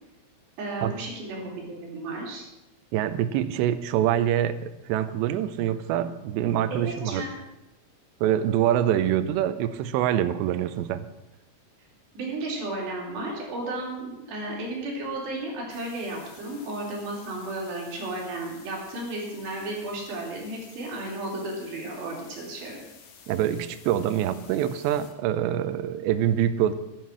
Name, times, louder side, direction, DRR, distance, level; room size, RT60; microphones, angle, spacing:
voice 1, 0.6-2.5 6.7-7.4 12.2-22.8, right 2 dB, 65° right, -2 dB, 5.6 m, -33 dB
voice 2, 2.9-7.3 8.2-11.1 23.3-26.7, right 11 dB, 80° right, 12 dB, 2.7 m, -25 dB
sound 1, 15.7-25.1, left 6 dB, 90° left, 1.5 m, -52 dB
11.5 x 10.5 x 7.4 m, 0.95 s
omnidirectional pair, 5.5 m